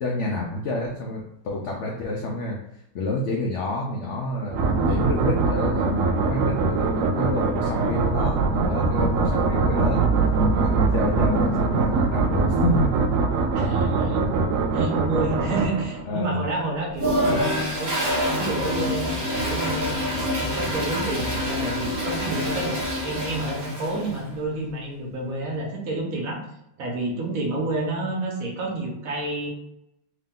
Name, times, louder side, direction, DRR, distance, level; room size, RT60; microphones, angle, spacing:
voice 1, 0.0-2.6 2.9-4.6 4.9-10.1 10.6-13.0 16.1-16.4, left 2 dB, 75° left, 0 dB, 0.6 m, -28 dB
sound 1, 4.5-16.2, right 4 dB, 85° right, 0.7 m, -22 dB
voice 2, 13.5-14.2 14.7-19.9 20.3-26.4 26.8-29.5, right 2 dB, 55° right, -1 dB, 1.3 m, -29 dB
Toilet flush, 16.9-24.2, equal, 30° right, 0.4 m, -26 dB
3.6 x 2.8 x 3.7 m, 0.79 s
omnidirectional pair, 1.9 m